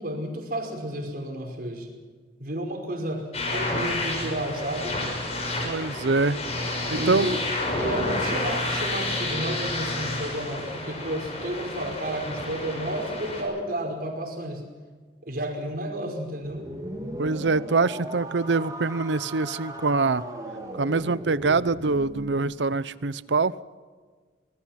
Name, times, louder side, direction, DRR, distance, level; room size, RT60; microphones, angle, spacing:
voice 1, 0.0-1.9 2.4-5.0 6.9-7.4 7.8-14.6 15.2-16.7, right 1 dB, 55° right, 2 dB, 5.3 m, -31 dB
sound 1, 3.3-13.4, left 2 dB, 35° left, 6.1 m, -30 dB
voice 2, 5.6-6.4 6.9-7.4 17.2-20.2 20.8-23.5, right 3 dB, 80° right, 18 dB, 0.7 m, -24 dB
sound 2, 16.4-22.4, right 1 dB, 20° right, 3.8 m, -37 dB
25.5 x 20.5 x 5.9 m, 1.5 s
head